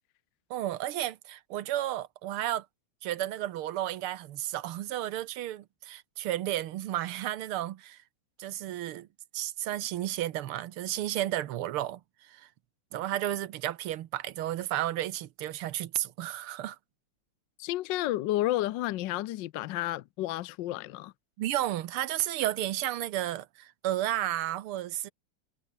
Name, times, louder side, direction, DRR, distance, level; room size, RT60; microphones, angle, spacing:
voice 1, 0.5-2.7 3.0-8.0 8.4-9.1 9.3-12.5 12.9-16.8 21.4-25.1, right 13 dB, 85° right, 1.8 m, -32 dB
voice 2, 17.6-21.1, left 15 dB, 70° left, 1.2 m, -31 dB
omnidirectional pair, 2.4 m